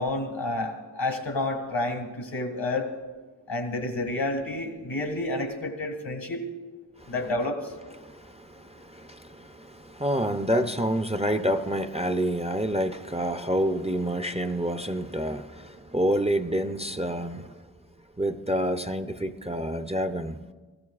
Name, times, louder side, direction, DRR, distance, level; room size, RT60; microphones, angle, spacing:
voice 1, 0.0-2.9 3.5-6.4 7.1-7.7, left 2 dB, 85° left, 1.9 m, -29 dB
voice 2, 8.0-17.6 18.2-20.4, equal, 15° right, 0.5 m, -28 dB
20.0 x 14.5 x 2.4 m
wide cardioid pair, 50°, 44 cm